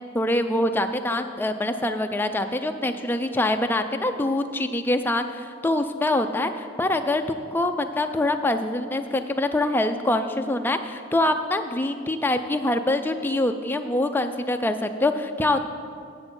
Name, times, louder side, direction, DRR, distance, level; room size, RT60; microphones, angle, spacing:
voice 1, 0.1-15.6, left 1 dB, 10° left, 6 dB, 0.3 m, -24 dB
9.0 x 7.9 x 5.3 m, 2.4 s
head